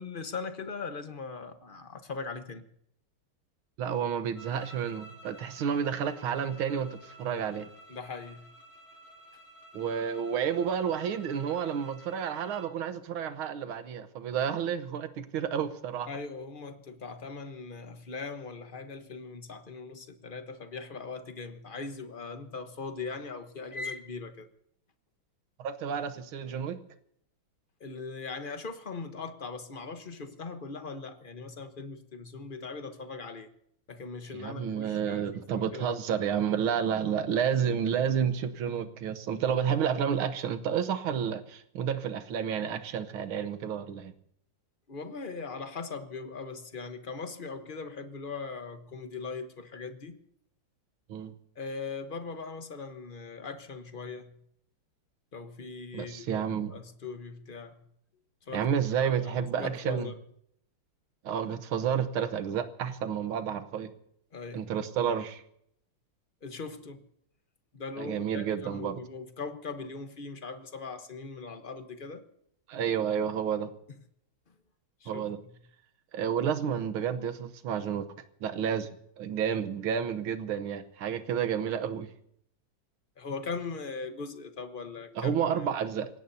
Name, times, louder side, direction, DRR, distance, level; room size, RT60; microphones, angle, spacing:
voice 1, 0.0-2.6 7.9-8.5 16.1-24.5 27.8-33.5 33.9-35.9 44.9-50.2 51.6-54.3 55.3-57.8 58.5-58.6 59.0-60.2 64.3-64.7 66.4-67.0 67.7-72.2 75.0-75.2 83.2-85.3 85.6-85.7, left 4 dB, 35° left, 1.0 m, -40 dB
voice 2, 3.8-7.7 9.7-16.1 25.6-26.8 34.3-44.1 51.1-51.3 55.9-56.7 58.5-60.1 61.2-63.9 64.5-65.4 68.0-69.0 72.7-73.7 75.1-75.4 76.1-78.1 78.4-78.9 79.2-82.1 85.2-86.1, right 8 dB, 80° right, 1.9 m, -30 dB
sound 1, 4.3-12.8, right 1 dB, 65° left, 3.3 m, -52 dB
29.0 x 17.0 x 2.8 m
omnidirectional pair, 2.3 m